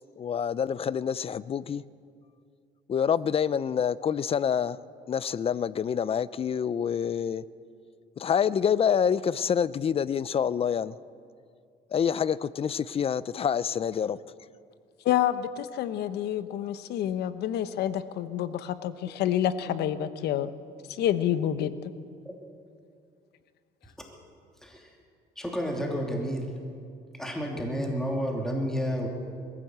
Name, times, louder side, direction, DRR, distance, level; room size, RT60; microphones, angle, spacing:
voice 1, 0.2-1.8 2.9-4.8 5.1-7.4 8.2-10.9 11.9-14.2, left 8 dB, 35° left, 18 dB, 0.6 m, -27 dB
voice 2, 15.0-20.5 20.9-21.8, left 11 dB, 75° left, 13 dB, 1.0 m, -28 dB
voice 3, 24.6-24.9 25.4-26.5 27.1-29.1, equal, 5° left, 0 dB, 3.0 m, -30 dB
21.5 x 15.0 x 8.0 m, 2.3 s
cardioid pair, 110°, 17 cm